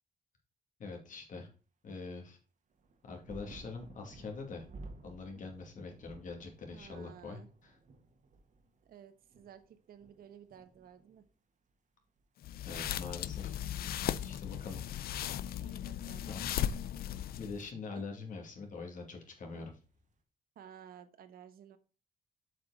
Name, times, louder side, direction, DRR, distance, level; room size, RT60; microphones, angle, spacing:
voice 1, 0.8-1.5 1.8-2.4 3.0-4.6 5.0-7.7 12.7-13.5 14.2-14.8 16.3-16.8 17.4-19.7, left 4 dB, 60° left, 3 dB, 2.5 m, -44 dB
sound 1, 2.7-11.8 12.0-12.9 13.9-14.0, right 2 dB, 55° right, 1.5 m, -55 dB
voice 2, 6.7-7.5 8.8-11.2 15.6-16.3 17.9-18.0 20.5-21.8, right 9 dB, 80° right, 10 dB, 1.1 m, -54 dB
sound 2, 12.4-17.7, left 11 dB, 85° left, 0.5 m, -37 dB
7.5 x 5.1 x 4.0 m, 0.36 s
cardioid pair, 120°, 15 cm